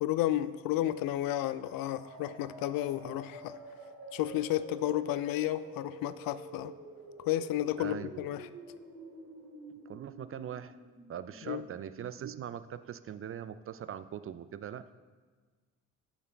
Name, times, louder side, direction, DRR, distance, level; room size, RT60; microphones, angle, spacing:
voice 1, 0.0-3.6 4.1-6.7 7.3-8.5 11.5-11.6, left 13 dB, 60° left, 15 dB, 0.5 m, -32 dB
sound 1, 0.8-12.5, right 2 dB, 55° right, 2.6 m, -50 dB
voice 2, 7.8-8.1 9.9-10.8 11.1-14.8, right 9 dB, 35° right, 14 dB, 0.4 m, -41 dB
15.5 x 6.5 x 2.3 m, 1.4 s
hypercardioid pair, 45°, 39 cm